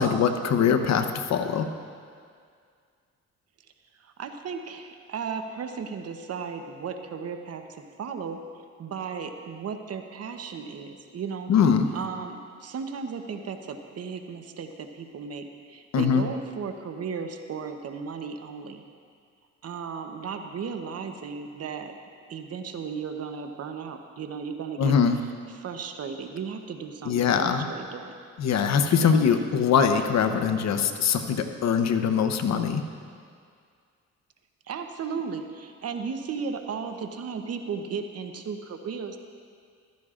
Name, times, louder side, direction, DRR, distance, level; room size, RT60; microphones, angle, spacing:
voice 1, 0.0-1.7 11.5-11.9 15.9-16.2 24.8-25.2 27.0-27.7 28.4-32.8, left 6 dB, 65° left, 7 dB, 0.8 m, -22 dB
voice 2, 4.0-7.6 8.0-8.4 8.8-11.5 11.9-18.8 19.6-21.9 22.3-25.0 25.5-28.2 29.0-29.2 34.7-39.2, right 6 dB, 55° right, 6 dB, 0.9 m, -35 dB
15.0 x 13.5 x 2.5 m, 2.1 s
cardioid pair, 90°, 30 cm